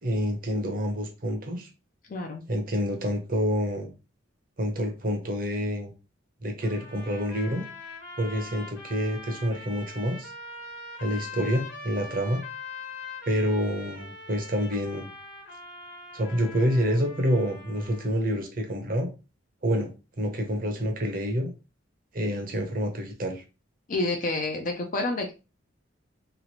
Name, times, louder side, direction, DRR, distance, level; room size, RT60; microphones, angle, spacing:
voice 1, 0.0-1.7 2.5-3.9 4.6-5.9 6.4-7.6 8.2-10.3 11.0-12.4 13.3-15.1 16.1-19.1 19.6-19.9 20.2-21.5 22.1-23.4, equal, 45° right, 4 dB, 0.8 m, -27 dB
voice 2, 2.1-2.4 23.9-25.3, left 2 dB, 40° left, 3 dB, 0.5 m, -28 dB
sound 1, 6.6-18.2, left 3 dB, 65° left, 1.2 m, -42 dB
3.0 x 2.5 x 2.9 m, 0.29 s
head